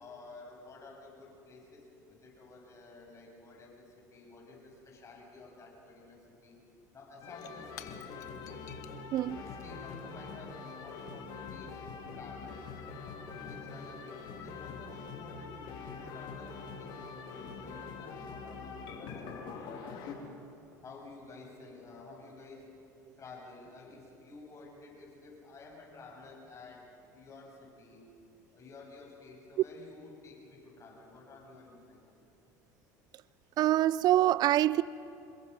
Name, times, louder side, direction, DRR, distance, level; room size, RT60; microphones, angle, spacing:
voice 1, 0.0-6.6 6.9-8.7 9.3-12.7 13.3-20.3 20.8-22.7 23.2-28.1 28.5-32.2, left 3 dB, 35° left, 7.7 m, -52 dB
Shatter / Crushing, 6.4-6.5 6.7-11.6, left 11 dB, 85° left, 1.2 m, -55 dB
sound 1, 7.2-20.1, left 5 dB, 55° left, 3.4 m, -44 dB
voice 2, 33.6-34.8, right 13 dB, 50° right, 0.5 m, -25 dB
27.5 x 22.0 x 5.5 m
hypercardioid pair, 80°, 9 cm